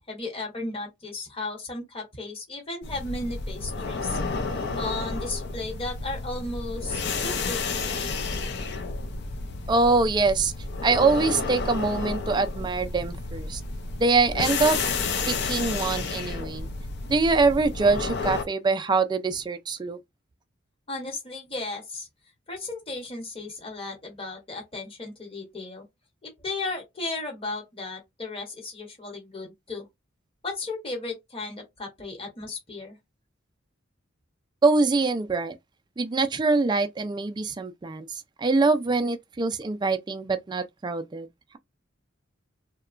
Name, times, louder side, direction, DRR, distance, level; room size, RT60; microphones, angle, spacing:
voice 1, 0.1-4.2 4.7-8.1 20.9-22.1 22.5-25.9 26.2-29.9 30.4-33.0, left 2 dB, 30° left, 1.0 m, -35 dB
sound 1, 2.8-18.4, left 4 dB, 55° left, 0.5 m, -31 dB
voice 2, 9.7-10.5 10.8-13.6 14.0-14.8 15.3-16.7 17.1-20.0 34.6-35.5 36.0-38.1 38.4-41.3, right 3 dB, 20° right, 0.3 m, -24 dB
2.8 x 2.2 x 2.5 m
head